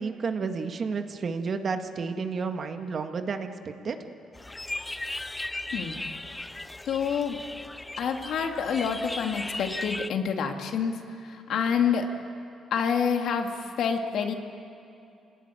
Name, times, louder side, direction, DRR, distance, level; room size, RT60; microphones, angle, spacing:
voice 1, 0.0-4.0, right 5 dB, 50° right, 6 dB, 1.9 m, -31 dB
sound 1, 4.3-10.1, left 2 dB, 15° left, 0.5 m, -37 dB
voice 2, 6.8-7.4 8.0-12.1 12.7-14.3, left 6 dB, 70° left, 4 dB, 2.4 m, -27 dB
27.0 x 18.0 x 10.0 m, 2.6 s
cardioid pair, 90°, 0 cm